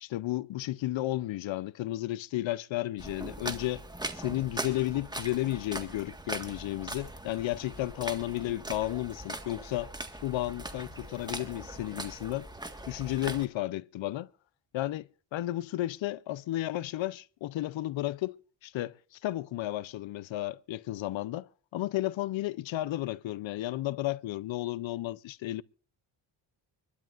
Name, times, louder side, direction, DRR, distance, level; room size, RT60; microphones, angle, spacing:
voice 1, 0.0-3.8 4.1-9.9 10.2-12.5 12.9-14.3 14.7-19.0 19.2-25.6, left 15 dB, 70° left, 0.7 m, -33 dB
sound 1, 3.0-13.4, right 1 dB, 10° right, 1.7 m, -40 dB
25.0 x 12.5 x 2.6 m
cardioid pair, 80°, 47 cm